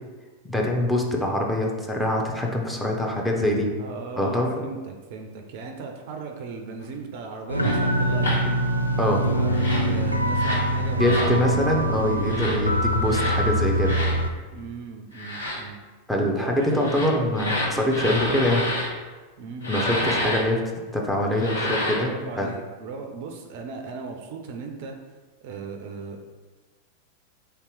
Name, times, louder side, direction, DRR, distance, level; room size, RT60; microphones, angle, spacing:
voice 1, 0.4-3.7 4.2-4.6 9.0-9.2 11.0-13.9 16.1-18.6 19.7-20.6 20.9-22.1 22.4-22.5, left 1 dB, 5° left, -1 dB, 0.7 m, -24 dB
voice 2, 3.8-8.3 9.1-11.6 14.5-15.8 16.4-17.2 19.4-20.4 22.0-25.0 25.4-26.3, right 4 dB, 50° right, 4 dB, 0.4 m, -37 dB
sound 1, 7.5-14.3, right 1 dB, 90° left, 0.3 m, -24 dB
sound 2, 7.6-7.8 8.2-8.4 9.5-9.9 10.3-10.7 11.0-11.3 12.2-12.6 13.1-13.4 13.8-14.2 15.1-15.6 16.7-18.9 19.6-20.4 21.3-22.1, left 1 dB, 75° left, 1.0 m, -28 dB
3.4 x 2.9 x 4.6 m, 1.3 s
figure-of-eight pair, 90°, 0 cm